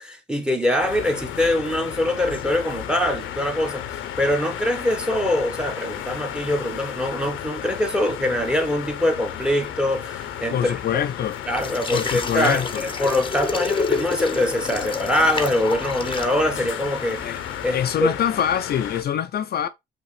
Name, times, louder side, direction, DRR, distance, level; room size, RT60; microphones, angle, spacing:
voice 1, 0.0-3.8 4.2-11.0 11.5-17.4 17.6-18.1, left 1 dB, 5° right, 1.1 m, -23 dB
sound 1, 0.8-19.0, left 10 dB, 85° left, 0.7 m, -34 dB
sound 2, 2.2-18.0, left 4 dB, 25° left, 0.8 m, -34 dB
voice 2, 10.5-11.4 11.9-12.8 17.2-17.4 17.7-19.7, left 9 dB, 55° left, 0.4 m, -24 dB
5.4 x 2.9 x 3.2 m
cardioid pair, 90°, 20 cm